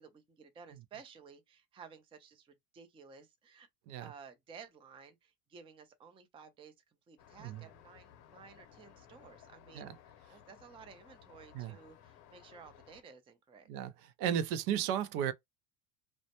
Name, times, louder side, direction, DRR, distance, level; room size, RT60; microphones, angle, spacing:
voice 1, 0.0-3.7 4.0-9.9 10.3-13.7, right 6 dB, 15° right, 0.3 m, -55 dB
Traffic noise roadway noise, 7.2-13.0, left 9 dB, 70° left, 0.8 m, -59 dB
voice 2, 14.2-15.3, right 9 dB, 75° right, 0.5 m, -34 dB
2.1 x 2.1 x 2.8 m
supercardioid pair, 95°, 46 cm